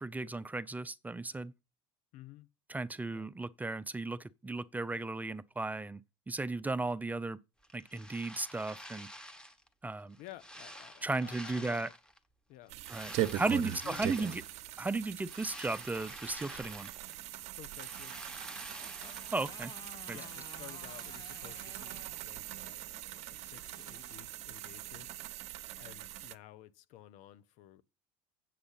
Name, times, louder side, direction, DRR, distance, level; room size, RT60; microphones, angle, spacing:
voice 1, 0.0-1.5 2.7-6.0 6.3-7.4 7.7-9.1 9.8-10.2 11.0-11.9 12.9-14.4 14.8-16.9 19.3-19.7 20.1-20.2, right 3 dB, 10° right, 0.5 m, -35 dB
voice 2, 2.1-2.5 3.1-3.3 10.2-11.9 12.5-12.8 13.2-14.1 17.6-18.2 20.1-27.8, left 14 dB, 65° left, 1.0 m, -53 dB
sound 1, 7.6-9.7 10.1-12.2 12.8-14.6 15.0-17.3 17.5-19.5, equal, 5° left, 1.3 m, -49 dB
sound 2, 12.7-26.4, right 14 dB, 60° right, 0.8 m, -41 dB
Motorcycle, 16.8-26.1, left 7 dB, 35° left, 1.1 m, -57 dB
8.6 x 7.8 x 5.7 m
supercardioid pair, 100°, 13 cm